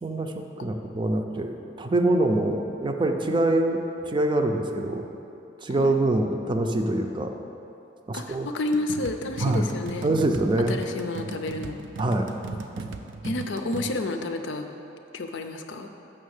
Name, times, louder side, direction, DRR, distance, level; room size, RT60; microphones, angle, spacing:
voice 1, 0.0-5.0 5.6-7.3 8.1-8.5 9.4-9.6 10.0-10.8 12.0-12.3, right 2 dB, 25° right, 4 dB, 0.5 m, -25 dB
voice 2, 8.1-10.2 10.7-11.8 13.2-14.7 15.1-15.9, left 2 dB, 70° left, 6 dB, 0.6 m, -30 dB
sound 1, 8.7-13.9, right 3 dB, 75° right, 0.5 m, -37 dB
6.5 x 6.1 x 6.4 m, 2.9 s
head